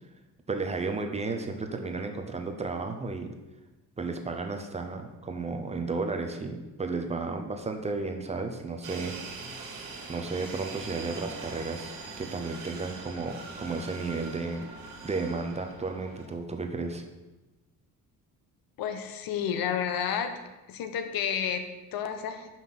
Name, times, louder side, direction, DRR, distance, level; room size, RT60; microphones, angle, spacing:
voice 1, 0.5-3.3 4.0-9.2 9.4-9.7 10.1-14.6 15.0-17.1, right 3 dB, 20° right, 5 dB, 0.7 m, -33 dB
sound 1, 8.8-16.3, right 4 dB, 65° right, 1.8 m, -42 dB
voice 2, 18.8-20.3 20.7-22.5, left 8 dB, 75° left, 7 dB, 1.0 m, -31 dB
5.8 x 5.5 x 6.1 m, 1.1 s
cardioid pair, 145°, 35 cm